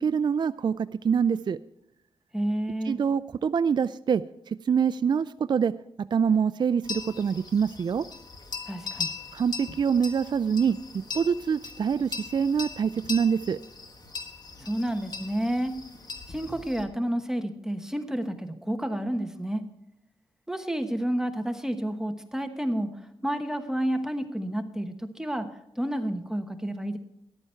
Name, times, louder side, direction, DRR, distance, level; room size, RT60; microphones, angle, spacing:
voice 1, 0.0-1.6 2.8-5.7 6.1-8.0 9.3-10.8 11.1-13.6, right 6 dB, 50° right, 13 dB, 0.3 m, -25 dB
voice 2, 2.3-3.0 8.7-9.1 14.6-15.7 16.3-19.7 20.5-22.9 23.2-27.0, right 1 dB, 5° right, 6 dB, 1.1 m, -30 dB
sound 1, 6.8-16.8, left 4 dB, 40° left, 1.4 m, -39 dB
14.0 x 11.0 x 4.4 m, 0.83 s
wide cardioid pair, 95°, 10 cm